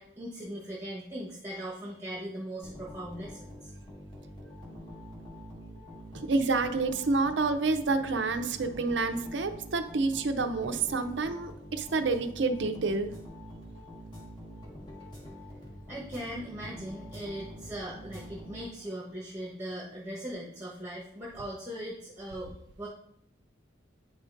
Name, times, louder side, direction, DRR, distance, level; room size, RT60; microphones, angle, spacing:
voice 1, 0.0-3.7 15.9-22.5 22.8-22.9, right 1 dB, 15° right, -5 dB, 1.1 m, -39 dB
sound 1, 2.6-19.1, equal, 25° left, 1.7 m, -46 dB
voice 2, 6.3-13.1, right 3 dB, 65° right, 9 dB, 0.6 m, -28 dB
9.5 x 5.1 x 2.6 m, 0.73 s
head